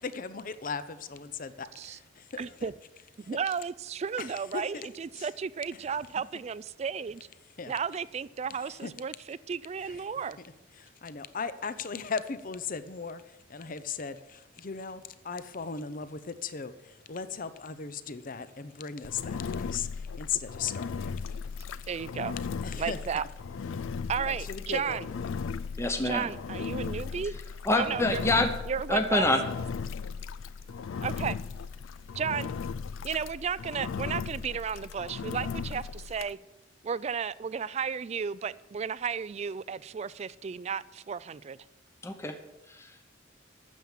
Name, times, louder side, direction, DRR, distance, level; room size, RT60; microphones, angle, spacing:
voice 1, 0.0-2.7 3.2-3.4 4.2-4.9 5.2-5.3 7.6-7.7 8.8-8.9 9.9-10.0 10.8-13.2 13.5-21.2 22.6-23.0 24.3-25.0, left 6 dB, 45° left, 13 dB, 0.7 m, -37 dB
voice 2, 2.4-2.7 3.3-7.3 7.7-10.4 21.9-22.3 22.8-23.2 24.1-25.0 26.0-27.4 27.7-28.2 28.7-29.3 31.0-31.4 32.1-32.5 33.0-36.4 36.8-41.6, right 6 dB, 35° right, 19 dB, 0.3 m, -33 dB
Engine, 19.0-36.3, left 5 dB, 90° left, 0.4 m, -37 dB
voice 3, 25.8-26.3 27.6-28.5 28.9-29.4 42.0-42.4 42.7-43.1, left 2 dB, 15° left, 5 dB, 0.8 m, -26 dB
9.3 x 7.2 x 9.0 m, 0.98 s
head